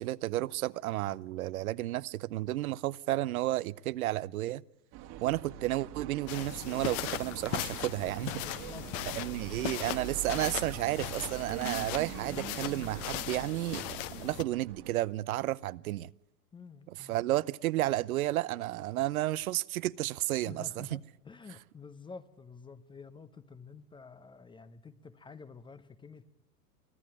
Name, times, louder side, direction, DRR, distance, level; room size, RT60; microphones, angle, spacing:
voice 1, 0.0-4.6 5.2-8.3 9.1-16.1 16.9-21.0, right 15 dB, 60° right, 0.7 m, -32 dB
sound 1, 4.9-14.9, right 12 dB, 40° right, 1.9 m, -44 dB
sound 2, 6.3-14.4, left 14 dB, 40° left, 1.2 m, -38 dB
voice 2, 8.2-8.9 16.5-17.2 20.5-26.2, left 5 dB, 10° left, 0.8 m, -49 dB
24.5 x 15.0 x 8.7 m
hypercardioid pair, 115°, 48 cm